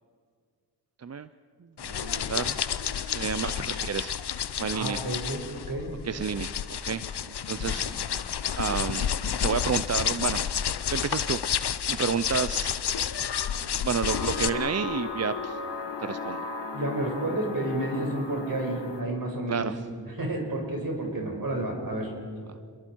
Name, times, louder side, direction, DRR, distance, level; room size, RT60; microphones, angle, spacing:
sound 1, 1.8-14.5, left 8 dB, 75° left, 0.7 m, -30 dB
voice 1, 1.9-2.6 3.0-4.2 4.6-5.0 6.0-7.0 7.5-7.9 8.5-9.1 9.4-10.4 10.9-11.4 11.9-12.8 13.8-15.6 16.0-16.4 19.5-19.8, right 6 dB, 40° right, 13 dB, 0.5 m, -30 dB
voice 2, 4.7-5.9 7.6-7.9 16.7-19.7 20.1-22.1, right 1 dB, 55° right, 1 dB, 5.3 m, -31 dB
sound 2, 14.0-19.0, left 4 dB, 90° left, 1.5 m, -35 dB
29.0 x 22.0 x 4.6 m, 2.1 s
wide cardioid pair, 70°, 40 cm